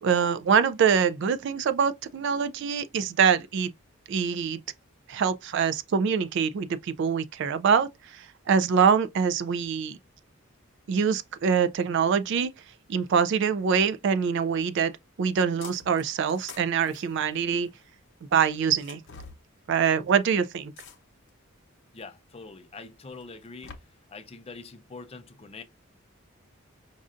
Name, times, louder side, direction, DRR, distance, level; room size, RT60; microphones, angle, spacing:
voice 1, 0.0-3.7 4.1-4.6 5.1-10.0 10.9-12.5 12.9-14.9 15.2-17.7 18.3-19.0 19.7-20.7, right 6 dB, 55° right, 0.3 m, -24 dB
sound 1, 15.6-16.0 16.3-17.8 18.7-19.4 20.8-21.3 22.0-22.1 23.2-23.7, left 5 dB, 55° left, 0.8 m, -46 dB
voice 2, 21.9-23.7 24.1-25.6, left 4 dB, 25° left, 0.4 m, -44 dB
5.2 x 2.5 x 2.4 m
head